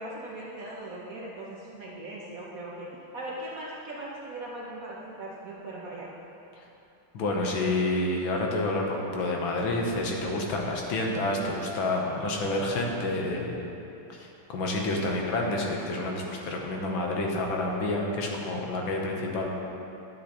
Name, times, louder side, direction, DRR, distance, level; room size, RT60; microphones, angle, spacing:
voice 1, 0.0-2.9 3.1-6.1, right 1 dB, 60° right, -4 dB, 1.0 m, -39 dB
voice 2, 7.1-13.7 14.1-19.5, left 2 dB, 75° left, 0 dB, 1.7 m, -29 dB
11.0 x 7.3 x 3.0 m, 2.9 s
omnidirectional pair, 2.2 m